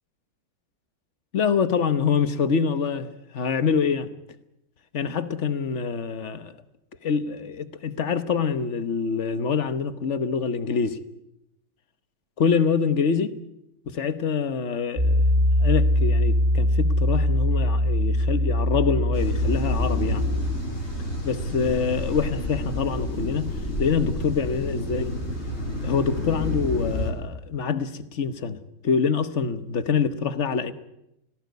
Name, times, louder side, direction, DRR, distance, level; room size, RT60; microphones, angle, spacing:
voice 1, 1.3-3.1 3.3-4.1 4.9-6.6 7.0-11.0 12.4-13.4 13.9-20.3 21.2-23.5 23.8-25.1 25.8-28.6 28.8-30.7, left 6 dB, 45° left, 13 dB, 1.0 m, -25 dB
Piano, 15.0-20.5, left 1 dB, 25° right, 4.1 m, -22 dB
sound 1, 19.1-27.1, left 1 dB, 30° left, 4.3 m, -30 dB
18.5 x 17.5 x 9.4 m, 0.83 s
omnidirectional pair, 2.4 m